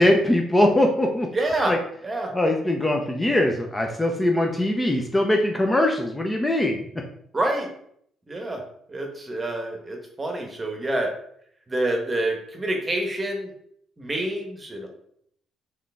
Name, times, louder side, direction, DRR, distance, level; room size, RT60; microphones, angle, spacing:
voice 1, 0.0-1.3 1.7-1.8 2.3-6.8, left 1 dB, 15° left, 2 dB, 0.6 m, -21 dB
voice 2, 1.3-1.7 2.0-2.3 7.3-7.7 8.3-8.6 8.9-11.1 11.7-13.5 14.0-15.0, right 1 dB, 25° right, 2 dB, 1.1 m, -27 dB
3.7 x 3.1 x 3.5 m, 0.68 s
supercardioid pair, 70°, 0 cm